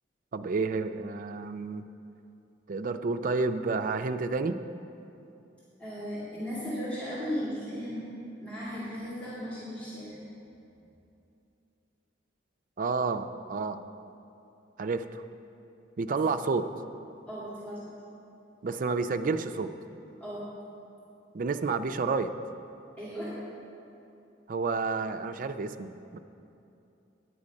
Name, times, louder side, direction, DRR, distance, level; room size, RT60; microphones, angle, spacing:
voice 1, 0.3-1.8 2.7-4.6 12.8-13.8 14.8-15.2 16.0-16.7 18.6-19.7 21.3-22.3 24.5-26.2, right 4 dB, 45° right, 8 dB, 0.4 m, -30 dB
voice 2, 5.8-8.0 8.4-10.2 17.3-17.9 20.2-20.4 23.0-23.3, equal, 10° left, -12 dB, 2.3 m, -36 dB
9.7 x 8.4 x 5.2 m, 2.7 s
head